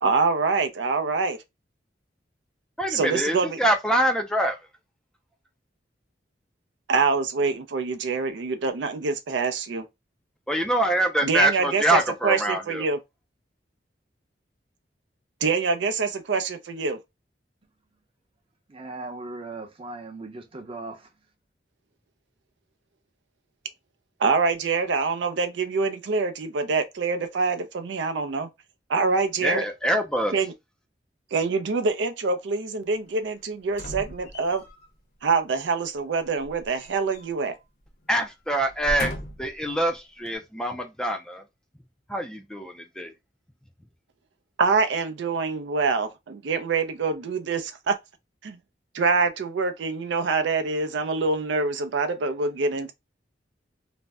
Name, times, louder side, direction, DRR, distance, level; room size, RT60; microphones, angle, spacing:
voice 1, 0.0-1.4 2.9-3.6 6.9-9.8 11.2-13.0 15.4-17.0 24.2-28.5 28.9-29.6 30.3-30.5 31.3-34.6 35.2-37.5 44.6-48.0 48.4-48.6 48.9-52.9, right 4 dB, 85° right, 0.4 m, -25 dB
voice 2, 2.8-4.6 10.5-12.8 29.4-30.3 38.1-39.1 39.4-41.4 42.1-43.1, right 1 dB, 5° left, 0.3 m, -25 dB
voice 3, 18.7-21.1, right 2 dB, 30° right, 0.7 m, -38 dB
sound 1, 33.7-34.9 36.4-37.6 37.9-38.1 38.6-39.6 40.3-40.4, left 1 dB, 55° left, 0.7 m, -36 dB
2.6 x 2.0 x 3.3 m
head